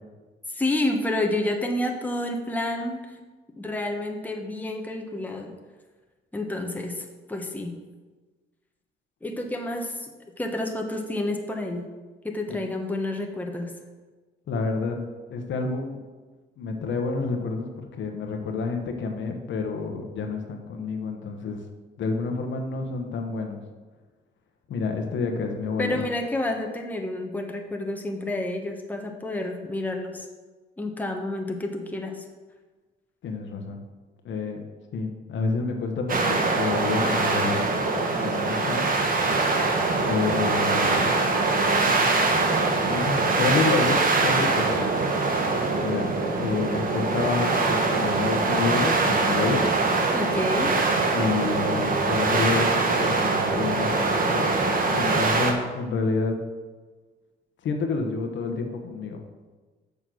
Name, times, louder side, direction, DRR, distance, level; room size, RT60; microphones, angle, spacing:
voice 1, 0.5-3.1 3.5-5.5 6.3-7.8 9.2-10.1 10.4-11.9 12.2-13.7 25.8-30.3 30.8-32.2 50.1-50.7, left 1 dB, 10° left, 2 dB, 1.2 m, -29 dB
voice 2, 14.5-15.0 15.3-16.0 16.6-21.6 22.0-23.6 24.7-26.0 33.2-33.8 34.2-34.6 34.9-37.7 38.2-38.9 40.0-41.1 42.8-44.9 45.8-46.1 46.4-49.6 51.1-54.5 54.9-56.4 57.6-59.2, left 4 dB, 70° left, 4 dB, 1.1 m, -29 dB
sound 1, 36.1-55.5, right 3 dB, 45° right, 1.3 m, -23 dB
6.8 x 5.5 x 6.2 m, 1.3 s
cardioid pair, 90°, 20 cm